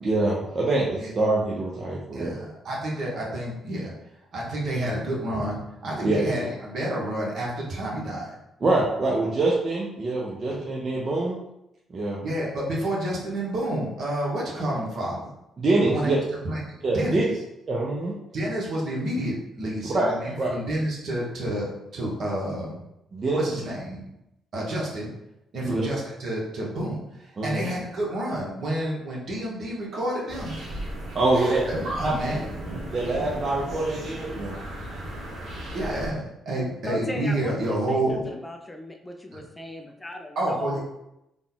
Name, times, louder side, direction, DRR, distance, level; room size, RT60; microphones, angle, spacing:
voice 1, 0.0-2.4 6.0-6.2 8.6-11.4 11.9-12.2 15.6-16.2 16.8-17.2 17.7-18.1 19.9-20.5 23.1-23.4 25.6-25.8 27.4-27.6 31.1-31.6 32.0-32.1 32.9-34.6, right 2 dB, 40° right, -4 dB, 0.7 m, -24 dB
voice 2, 2.1-3.9 4.3-8.3 10.5-10.6 12.2-15.3 15.8-16.6 16.9-17.2 18.3-22.8 23.3-24.1 24.5-25.1 25.5-27.0 27.4-30.5 31.3-32.4 35.7-38.3 39.3-39.4 40.3-40.8, right 1 dB, 60° right, -3 dB, 1.3 m, -29 dB
sound 1, 30.3-36.1, right 1 dB, 80° right, 1.1 m, -36 dB
voice 3, 36.8-40.8, left 1 dB, 15° left, 4 dB, 0.4 m, -36 dB
3.9 x 2.3 x 3.9 m, 0.87 s
cardioid pair, 90°, 0 cm